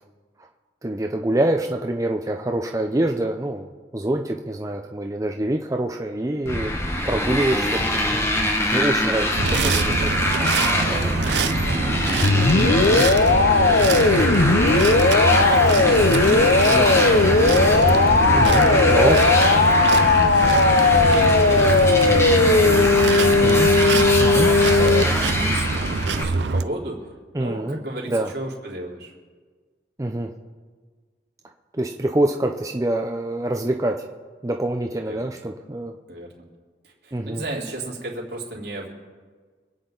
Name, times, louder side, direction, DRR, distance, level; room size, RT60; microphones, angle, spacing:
voice 1, 0.8-6.7 7.1-7.8 8.1-8.3 8.7-10.2 12.5-13.0 14.7-15.3 16.7-16.9 18.3-19.2 19.8-19.9 23.4-23.7 24.2-24.5 27.3-27.8 28.1-28.3 30.0-30.3 31.7-34.1 34.4-35.9 37.1-37.4, right 1 dB, 20° right, 2 dB, 0.6 m, -25 dB
Motorcycle, 6.5-26.2, left 1 dB, 15° left, 1.6 m, -24 dB
sound 1, 9.4-26.6, right 4 dB, 80° right, 0.6 m, -25 dB
voice 2, 11.6-14.3 14.6-14.8 15.6-19.2 20.2-23.6 24.3-27.1 27.4-29.1 35.1-35.3 36.1-36.4 36.8-38.9, right 1 dB, 65° right, -3 dB, 3.8 m, -34 dB
sound 2, 12.2-25.0, left 3 dB, 65° left, 0.6 m, -17 dB
26.0 x 9.2 x 3.9 m, 1.5 s
head